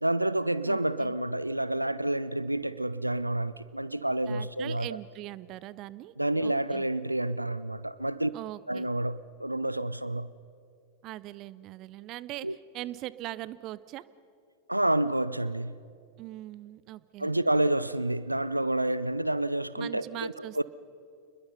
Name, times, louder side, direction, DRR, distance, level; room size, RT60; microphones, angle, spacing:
voice 1, 0.0-4.9 6.2-8.3 8.7-10.3 12.4-12.5 14.7-15.8 17.2-20.6, right 1 dB, 85° right, 0.4 m, -29 dB
voice 2, 0.7-1.2 4.3-6.1 6.4-6.9 8.3-8.9 11.0-14.0 16.2-17.3 19.8-20.6, right 15 dB, 40° right, 0.6 m, -41 dB
28.5 x 21.0 x 5.5 m
figure-of-eight pair, 90°, 0 cm